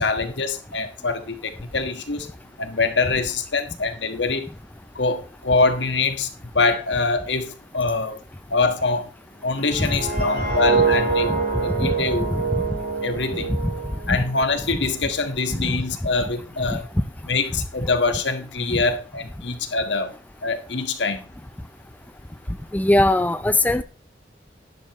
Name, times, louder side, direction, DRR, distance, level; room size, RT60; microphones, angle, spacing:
voice 1, 0.0-2.3 2.6-4.5 4.9-8.2 8.5-9.1 9.4-11.3 11.6-12.3 13.0-13.6 14.1-16.9 17.3-20.1 20.4-21.3, left 3 dB, 80° left, 8 dB, 1.5 m, -24 dB
sound 1, 9.6-14.6 15.0-15.3, right 5 dB, 60° right, 7.0 m, -25 dB
voice 2, 22.7-23.8, left 1 dB, 10° left, 11 dB, 0.5 m, -19 dB
11.5 x 11.0 x 3.0 m, 0.34 s
head